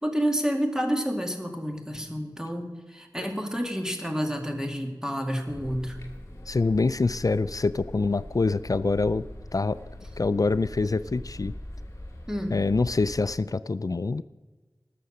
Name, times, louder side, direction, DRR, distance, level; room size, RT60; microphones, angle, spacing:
voice 1, 0.0-6.0 12.3-12.6, equal, 10° right, 3 dB, 2.1 m, -29 dB
sound 1, 5.5-13.3, left 1 dB, 35° left, 2.8 m, -42 dB
voice 2, 6.5-9.2 9.5-9.8 10.2-11.5 12.5-14.2, left 3 dB, 55° left, 15 dB, 0.4 m, -25 dB
19.0 x 6.7 x 6.4 m, 1.3 s
wide cardioid pair, 45°, 7 cm